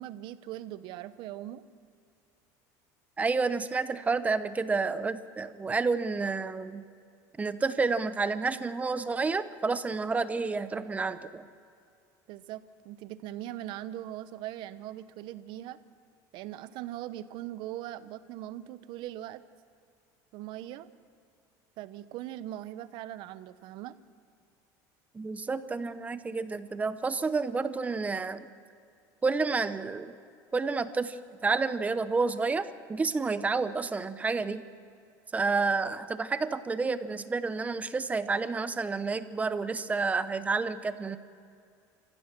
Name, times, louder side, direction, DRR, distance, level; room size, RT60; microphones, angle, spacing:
voice 1, 0.0-1.6 12.3-15.8 16.3-19.4 20.3-20.9 21.8-23.9, right 13 dB, 60° right, 13 dB, 0.9 m, -40 dB
voice 2, 3.2-6.8 7.4-11.5 25.1-28.5 29.2-30.2 30.5-34.6 35.3-41.2, right 4 dB, 15° right, 12 dB, 0.9 m, -30 dB
28.5 x 15.0 x 6.1 m, 2.4 s
cardioid pair, 130°, 9 cm